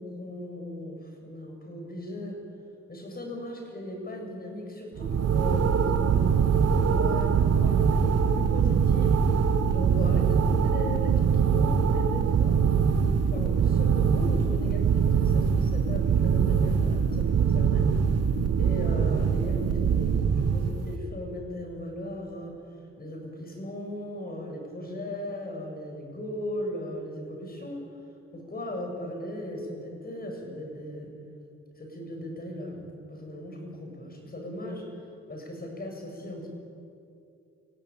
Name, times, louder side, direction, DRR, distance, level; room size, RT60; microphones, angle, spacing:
voice 1, 0.0-2.4 2.9-9.2 9.7-12.7 13.1-17.9 18.6-22.6 23.0-27.8 28.3-31.1 31.7-34.9 35.3-36.5, left 1 dB, 30° left, 2 dB, 7.6 m, -37 dB
sound 1, 5.0-21.0, right 6 dB, 55° right, 1.7 m, -23 dB
28.5 x 16.5 x 9.0 m, 2.5 s
cardioid pair, 90°, 30 cm